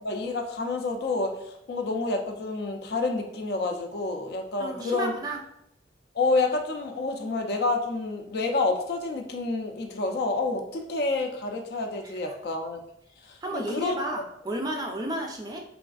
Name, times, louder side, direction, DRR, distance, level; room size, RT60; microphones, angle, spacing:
voice 1, 0.0-5.1 6.1-12.8 13.2-14.0, left 3 dB, 60° left, 4 dB, 0.4 m, -28 dB
voice 2, 4.6-5.4 12.0-12.4 13.4-15.6, right 1 dB, 20° right, 2 dB, 0.3 m, -32 dB
3.4 x 2.4 x 2.3 m, 0.78 s
head